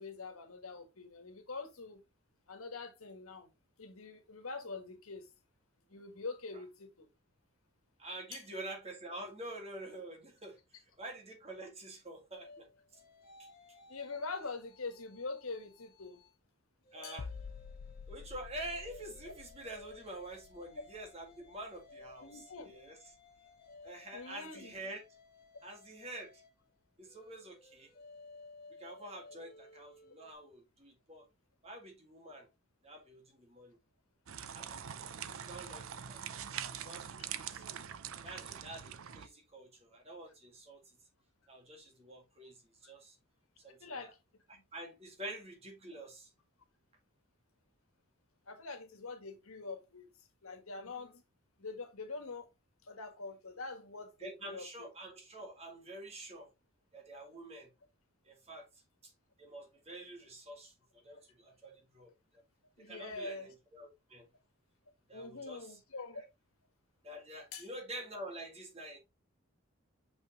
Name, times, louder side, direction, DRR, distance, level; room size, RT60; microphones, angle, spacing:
voice 1, 0.0-2.0 2.5-3.5 3.8-5.3 5.9-7.1 8.3-8.4 13.9-16.2 17.0-17.2 22.2-22.7 24.1-24.7 37.2-37.3 43.8-44.2 48.5-50.1 50.4-51.2 51.6-52.5 52.8-54.7 62.8-63.5 65.1-66.2 67.5-67.6, left 3 dB, 85° left, 1.6 m, -44 dB
voice 2, 8.0-10.6 11.0-13.0 13.4-13.5 16.9-17.3 18.1-23.2 23.8-25.0 25.6-26.4 27.0-27.9 28.8-31.3 31.6-32.5 32.8-33.8 34.5-36.5 36.8-37.7 38.2-40.8 41.5-43.2 43.6-44.1 44.7-46.3 54.2-56.5 56.9-57.7 58.2-59.1 59.4-62.4 62.8-64.3 65.1-65.8 66.1-66.2 67.0-69.0, right 1 dB, 30° right, 1.9 m, -47 dB
sound 1, 12.3-16.4 16.8-30.3, left 3 dB, 45° left, 1.8 m, -58 dB
sound 2, 17.2-22.9 23.1-23.4, left 5 dB, 70° left, 0.4 m, -50 dB
sound 3, 34.3-39.3, right 8 dB, 75° right, 0.6 m, -44 dB
6.3 x 5.6 x 3.0 m
head